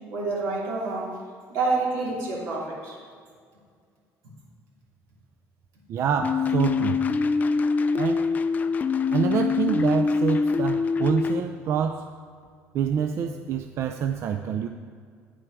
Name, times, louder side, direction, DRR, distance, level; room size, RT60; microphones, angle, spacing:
voice 1, 0.1-1.2 1.5-3.0, right 3 dB, 85° right, -4 dB, 2.9 m, -28 dB
voice 2, 5.9-7.0 7.9-8.3 9.1-12.1 12.7-14.7, right 7 dB, 50° right, 6 dB, 0.4 m, -26 dB
sound 1, 6.2-11.4, left 4 dB, 30° left, 0.4 m, -24 dB
9.3 x 9.2 x 4.7 m, 2.1 s
cardioid pair, 135°, 6 cm